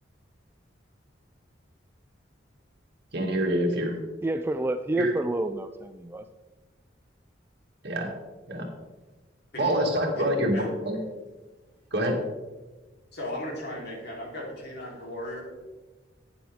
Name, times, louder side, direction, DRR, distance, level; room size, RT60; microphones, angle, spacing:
voice 1, 3.1-4.0 5.0-5.1 7.8-8.1 8.5-8.7 9.6-11.0 11.9-12.2, equal, 65° right, 1 dB, 2.3 m, -26 dB
voice 2, 4.2-6.3, right 2 dB, 15° right, 8 dB, 0.3 m, -29 dB
voice 3, 13.1-15.4, left 1 dB, 60° left, -3 dB, 3.7 m, -36 dB
11.0 x 9.5 x 3.6 m, 1.2 s
head